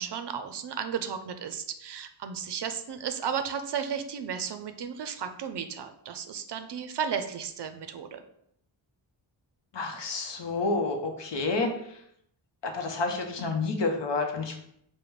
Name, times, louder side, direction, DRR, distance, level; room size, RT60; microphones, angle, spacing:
voice 1, 0.0-8.2, right 7 dB, 60° right, 8 dB, 0.5 m, -34 dB
voice 2, 9.7-12.0 12.6-14.6, left 3 dB, 60° left, 3 dB, 0.8 m, -29 dB
4.9 x 2.2 x 3.1 m, 0.73 s
wide cardioid pair, 80°, 48 cm